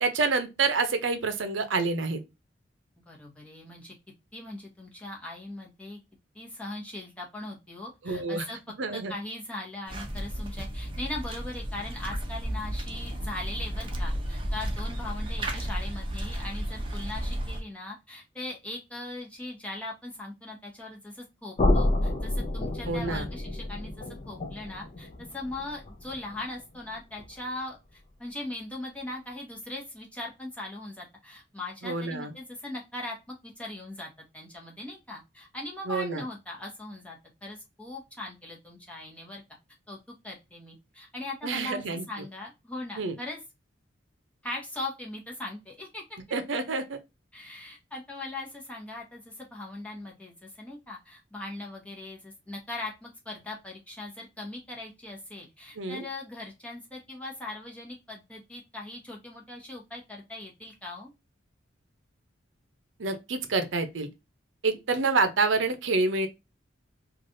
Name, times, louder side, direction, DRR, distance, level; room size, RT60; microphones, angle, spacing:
voice 1, 0.0-2.2 8.0-8.5 8.8-9.1 22.9-23.3 31.8-32.3 35.9-36.2 41.4-42.0 43.0-43.2 46.3-47.0 55.8-56.0 63.0-64.1 64.6-66.3, right 3 dB, 75° right, 0.6 m, -27 dB
voice 2, 3.1-3.9 4.3-6.0 6.3-8.6 8.9-39.4 39.9-40.0 40.2-41.8 42.1-43.4 44.4-46.0 47.3-61.1, left 2 dB, 5° left, 0.9 m, -40 dB
sound 1, 9.9-17.6, equal, 25° right, 0.6 m, -33 dB
sound 2, 21.6-27.5, left 1 dB, 35° left, 0.4 m, -30 dB
3.2 x 2.4 x 2.5 m
head